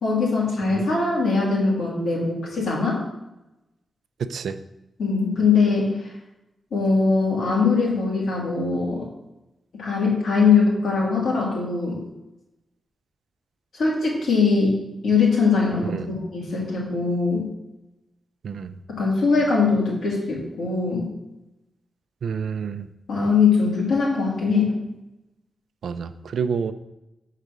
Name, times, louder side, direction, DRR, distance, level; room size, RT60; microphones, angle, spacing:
voice 1, 0.0-3.0 5.0-6.0 6.7-9.1 9.8-12.0 13.7-17.5 18.9-21.1 23.1-24.7, left 4 dB, 85° left, -4 dB, 2.7 m, -21 dB
voice 2, 4.2-4.6 15.9-16.1 18.4-18.8 22.2-22.9 25.8-26.7, right 6 dB, 75° right, 11 dB, 0.4 m, -28 dB
6.7 x 4.8 x 6.1 m, 0.95 s
wide cardioid pair, 180°, 0 cm